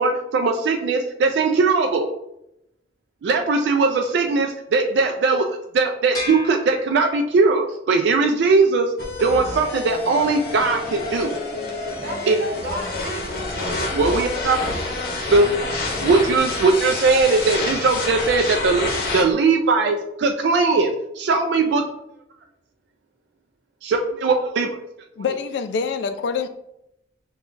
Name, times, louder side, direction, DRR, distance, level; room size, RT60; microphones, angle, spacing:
voice 1, 0.0-2.1 3.2-8.9 9.2-11.3 12.3-12.4 13.9-14.6 14.8-15.5 16.0-20.9 21.2-21.8 23.8-24.7, right 3 dB, 75° right, 4 dB, 0.3 m, -20 dB
sound 1, 6.1-7.6, left 1 dB, 20° left, 0.7 m, -34 dB
sound 2, 9.0-19.2, left 2 dB, 55° left, 0.8 m, -28 dB
voice 2, 12.0-15.8, right 1 dB, 55° right, -2 dB, 1.1 m, -35 dB
voice 3, 25.2-26.5, left 5 dB, 85° left, 9 dB, 0.3 m, -25 dB
5.4 x 2.3 x 2.5 m, 0.83 s
head